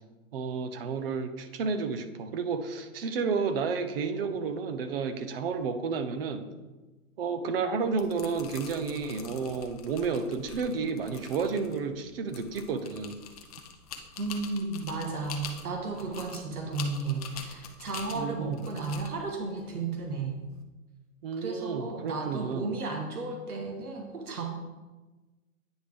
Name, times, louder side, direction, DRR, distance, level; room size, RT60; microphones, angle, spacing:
voice 1, 0.3-6.5 7.2-13.1 18.1-18.6 21.2-22.7, right 5 dB, 40° right, 9 dB, 0.6 m, -31 dB
sound 1, 7.8-20.6, left 7 dB, 25° left, 0.5 m, -46 dB
voice 2, 14.2-20.4 21.4-24.5, right 3 dB, 80° right, 2 dB, 1.3 m, -34 dB
9.0 x 5.0 x 3.4 m, 1.2 s
hypercardioid pair, 140°, 44 cm